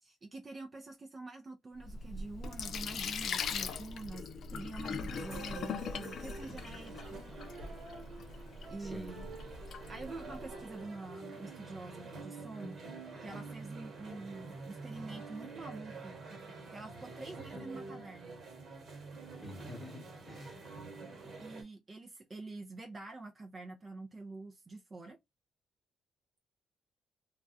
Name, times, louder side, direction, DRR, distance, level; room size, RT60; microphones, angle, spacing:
voice 1, 0.0-7.4 8.7-9.3 9.9-12.8 13.2-16.1 16.7-18.4 21.4-25.2, right 3 dB, 35° right, 0.4 m, -46 dB
Sink (filling or washing), 1.8-10.6, left 5 dB, 65° left, 0.4 m, -41 dB
sound 1, 5.2-21.6, right 3 dB, 55° right, 1.2 m, -47 dB
voice 2, 8.8-9.4 17.5-17.7 19.4-20.6, left 1 dB, ahead, 1.1 m, -48 dB
2.3 x 2.2 x 2.4 m
cardioid pair, 90°, 0 cm